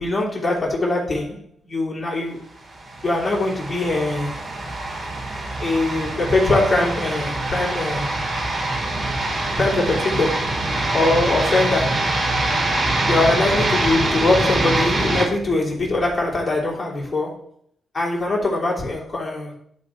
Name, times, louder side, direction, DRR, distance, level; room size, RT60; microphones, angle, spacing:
voice 1, 0.0-2.4 3.0-4.4 5.6-8.1 9.6-10.6 10.9-12.1 13.0-17.4 17.9-19.6, left 2 dB, 35° left, 3.2 m, -22 dB
sound 1, 2.7-15.2, right 2 dB, 50° right, 3.0 m, -24 dB
11.0 x 3.9 x 3.8 m
cardioid pair, 65°, 0 cm